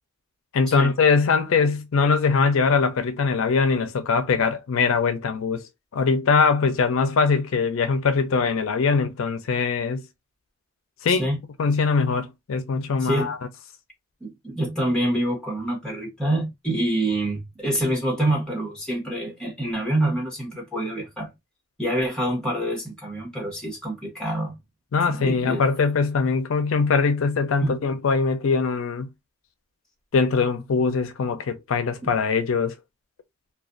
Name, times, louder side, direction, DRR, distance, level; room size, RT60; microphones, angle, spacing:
voice 1, 0.5-5.6 5.9-10.0 11.0-11.3 11.6-13.4 24.9-29.1 30.1-32.7, left 5 dB, 80° left, 0.4 m, -22 dB
voice 2, 11.1-11.4 13.0-13.3 14.2-21.3 21.8-24.6 25.0-25.6 27.6-27.8 32.0-32.1, right 1 dB, 5° left, 1.1 m, -26 dB
2.4 x 2.2 x 2.4 m
head